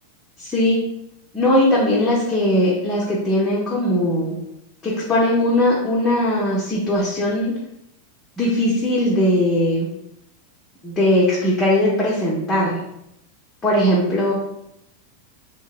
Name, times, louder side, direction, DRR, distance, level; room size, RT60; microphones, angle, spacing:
voice 1, 0.4-0.8 1.3-4.4 4.8-7.5 8.4-9.9 10.8-12.8 13.6-14.3, left 1 dB, 15° left, -6 dB, 0.6 m, -19 dB
2.8 x 2.1 x 2.4 m, 0.80 s
figure-of-eight pair, 90°, 0 cm